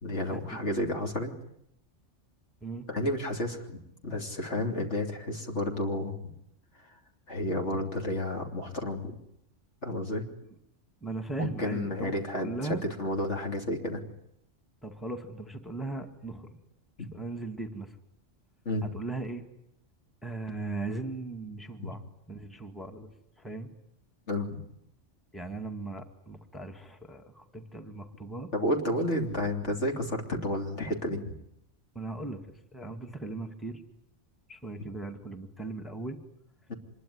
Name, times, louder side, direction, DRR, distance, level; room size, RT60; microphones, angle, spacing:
voice 1, 0.0-1.3 2.9-6.3 7.3-9.2 9.8-10.3 11.4-14.0 17.0-17.1 18.7-18.9 21.8-21.9 24.3-24.6 28.5-31.2 36.7-36.8, left 1 dB, 65° left, 3 dB, 3.5 m, -31 dB
voice 2, 11.0-12.8 14.8-16.5 17.1-18.0 18.9-19.4 20.2-22.0 22.3-23.1 23.4-23.7 25.3-28.5 32.0-32.4 32.7-33.8 34.5-36.2, right 3 dB, ahead, 5 dB, 2.0 m, -38 dB
26.0 x 22.0 x 9.7 m, 0.76 s
omnidirectional pair, 1.3 m